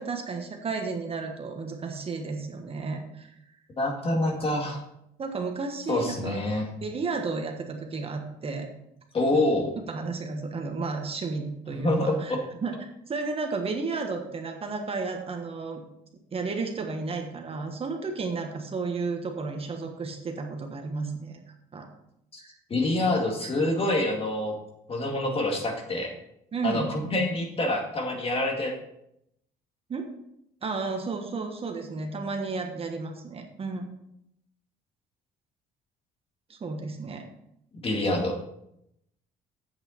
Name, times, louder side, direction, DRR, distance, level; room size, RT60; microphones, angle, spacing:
voice 1, 0.0-3.3 5.2-6.4 6.8-8.7 9.8-12.3 12.6-12.8 13.1-15.8 16.3-21.4 21.7-21.9 22.4-22.5 26.5-26.9 29.9-30.1 30.6-33.9 36.5-37.2, right 4 dB, 35° right, 4 dB, 1.3 m, -32 dB
voice 2, 3.8-4.8 5.9-6.7 9.1-9.7 11.7-12.4 22.3-22.4 22.7-24.6 24.9-26.1 26.6-28.7 37.8-38.5, left 1 dB, 35° left, 1 dB, 2.2 m, -26 dB
8.2 x 7.8 x 4.2 m, 0.78 s
cardioid pair, 110°, 17 cm